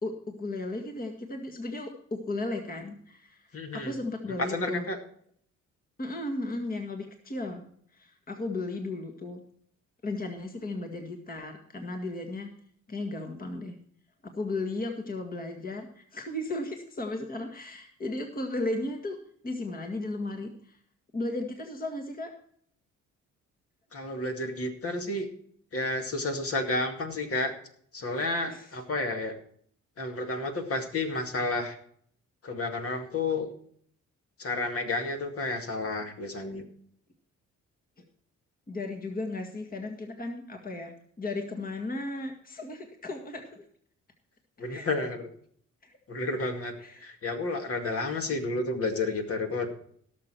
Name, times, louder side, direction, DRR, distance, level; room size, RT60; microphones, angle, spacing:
voice 1, 0.0-4.9 6.0-7.7 7.9-9.4 10.0-12.5 12.9-13.8 14.2-19.2 19.4-20.8 21.1-22.3 28.5-28.7 38.0-38.1 38.7-43.6 44.7-44.9 45.8-46.0 46.8-47.1, left 2 dB, 30° left, 4 dB, 1.9 m, -35 dB
voice 2, 3.5-4.0 4.4-5.0 23.9-25.3 25.7-27.5 27.9-29.4 30.0-31.8 32.4-33.5 34.4-36.7 44.6-45.3 46.1-49.7, left 2 dB, 50° left, 4 dB, 2.2 m, -31 dB
17.0 x 6.8 x 4.5 m, 0.62 s
cardioid pair, 90°, 30 cm